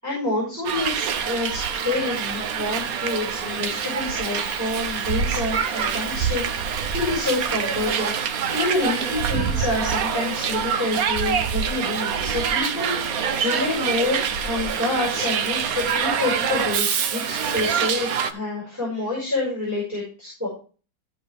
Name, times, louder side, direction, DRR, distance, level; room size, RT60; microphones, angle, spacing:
voice 1, 0.0-20.5, left 2 dB, 10° right, -5 dB, 5.7 m, -28 dB
Hiss, 0.7-18.3, right 7 dB, 60° right, 1.2 m, -25 dB
15.0 x 5.4 x 3.5 m, 0.37 s
omnidirectional pair, 1.9 m